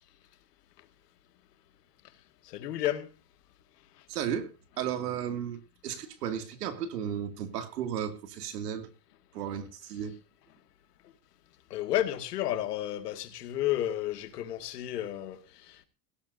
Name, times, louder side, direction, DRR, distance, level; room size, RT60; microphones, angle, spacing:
voice 1, 2.5-3.1 11.7-15.9, left 13 dB, 80° left, 2.2 m, -32 dB
voice 2, 4.1-4.5 4.8-8.9 9.3-10.2, right 9 dB, 85° right, 2.6 m, -34 dB
18.0 x 16.5 x 2.7 m
hypercardioid pair, 100°, 47 cm